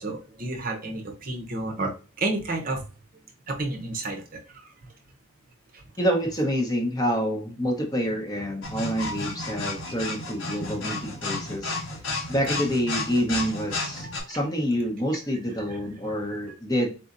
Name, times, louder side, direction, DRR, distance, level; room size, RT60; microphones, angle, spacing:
voice 1, 0.0-1.9 2.2-2.8 3.5-4.4 14.0-14.4, right 2 dB, 40° right, 3 dB, 0.8 m, -31 dB
voice 2, 6.0-11.7 12.3-16.9, equal, 15° left, 1 dB, 0.9 m, -27 dB
sound 1, 8.6-14.2, left 2 dB, 70° left, 1.3 m, -32 dB
4.1 x 4.1 x 2.5 m, 0.34 s
head